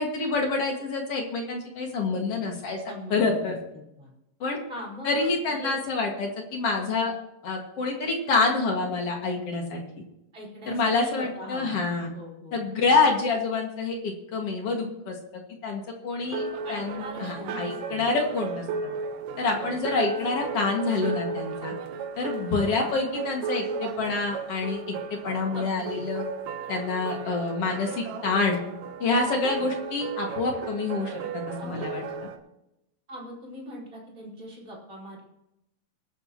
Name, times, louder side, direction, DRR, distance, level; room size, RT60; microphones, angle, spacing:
voice 1, 0.0-2.8 3.1-3.5 4.4-4.6 5.0-7.1 7.4-9.8 10.7-12.1 12.5-15.2 15.6-18.7 19.4-21.7 22.2-26.2 26.7-28.6 29.0-32.0, left 3 dB, 45° left, 1 dB, 2.3 m, -27 dB
voice 2, 2.9-4.1 4.7-5.8 10.3-11.8 12.1-12.6 16.6-18.1 19.6-19.8 22.5-22.7 25.5-26.1 29.2-29.7 31.6-32.2 33.1-35.2, left 1 dB, 20° right, -5 dB, 4.9 m, -41 dB
sound 1, 16.2-32.4, right 5 dB, 70° right, 2.3 m, -35 dB
22.0 x 9.3 x 3.0 m, 0.86 s
omnidirectional pair, 4.6 m